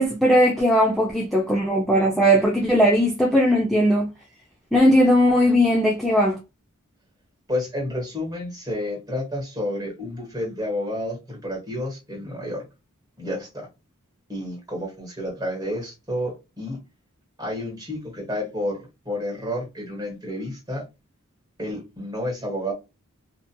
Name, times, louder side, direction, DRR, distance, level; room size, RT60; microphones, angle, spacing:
voice 1, 0.0-4.1 4.7-6.4, equal, ahead, 0.4 m, -18 dB
voice 2, 7.5-12.6 13.2-13.7 14.3-16.8 17.4-20.8 21.6-22.7, left 1 dB, 20° right, 1.2 m, -30 dB
2.8 x 2.4 x 2.2 m
head